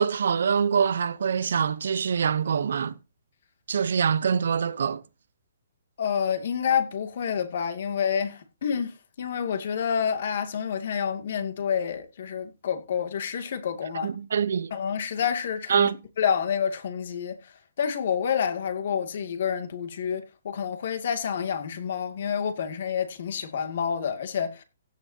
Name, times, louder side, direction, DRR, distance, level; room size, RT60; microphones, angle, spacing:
voice 1, 0.0-2.9 3.7-5.0 14.0-14.7 15.7-15.9, right 7 dB, 70° right, 0.8 m, -24 dB
voice 2, 6.0-14.1 14.7-15.9 16.2-24.6, left 7 dB, 55° left, 2.3 m, -28 dB
16.0 x 9.8 x 2.8 m
hypercardioid pair, 165°, 0 cm